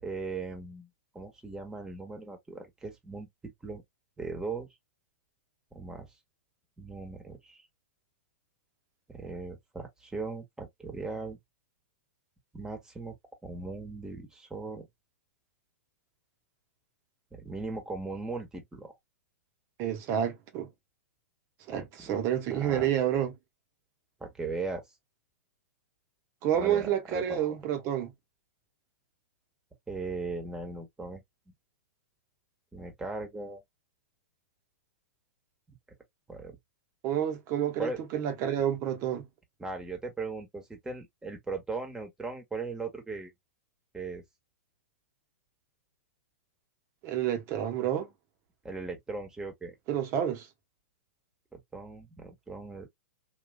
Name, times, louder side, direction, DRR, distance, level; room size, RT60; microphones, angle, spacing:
voice 1, 0.0-3.3 3.6-3.8 4.2-4.7 5.7-6.1 6.8-7.6 9.1-11.4 12.5-13.2 13.4-14.9 17.3-18.9 21.7-22.1 22.5-22.9 24.2-24.8 26.6-27.5 29.9-31.2 32.7-33.6 36.3-36.6 37.8-38.0 39.6-43.3 43.9-44.2 48.6-49.7 51.5-52.9, right 3 dB, 10° right, 1.4 m, -38 dB
voice 2, 19.8-20.7 21.7-23.3 26.4-28.1 37.0-39.3 47.0-48.1 49.9-50.5, right 10 dB, 40° right, 1.2 m, -29 dB
4.0 x 2.7 x 2.2 m
hypercardioid pair, 110°, 8 cm